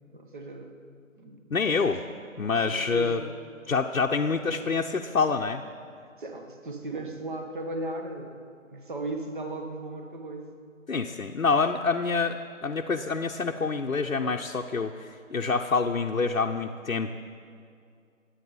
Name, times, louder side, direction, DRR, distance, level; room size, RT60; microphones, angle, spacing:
voice 1, 0.1-0.7 1.2-1.8 2.5-3.3 4.4-4.7 6.2-8.4 8.6-10.5, right 2 dB, 40° right, 3 dB, 1.9 m, -37 dB
voice 2, 1.5-2.0 2.4-3.2 3.7-5.6 10.9-17.2, left 4 dB, 85° left, 2 dB, 1.0 m, -27 dB
23.0 x 9.3 x 5.5 m, 2.3 s
figure-of-eight pair, 160°, 40 cm